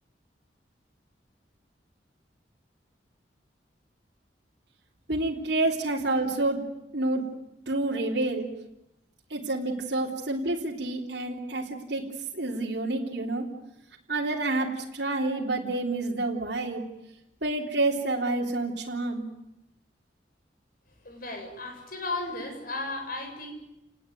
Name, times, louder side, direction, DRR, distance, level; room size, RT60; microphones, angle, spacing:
voice 1, 5.1-6.7 6.9-7.2 7.7-8.5 9.3-12.1 12.3-13.5 14.1-16.8 17.4-19.3, right 2 dB, 70° right, -2 dB, 3.4 m, -28 dB
voice 2, 21.0-23.5, left 2 dB, 55° left, 5 dB, 6.7 m, -35 dB
29.5 x 19.5 x 9.2 m, 0.88 s
head